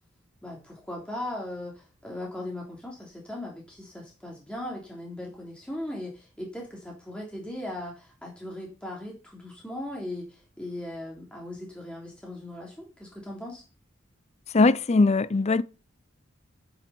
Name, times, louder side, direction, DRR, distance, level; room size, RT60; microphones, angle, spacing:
voice 1, 0.4-13.6, left 1 dB, 5° left, 3.2 m, -38 dB
voice 2, 14.5-15.6, left 3 dB, 35° left, 0.5 m, -20 dB
9.3 x 7.6 x 6.9 m
head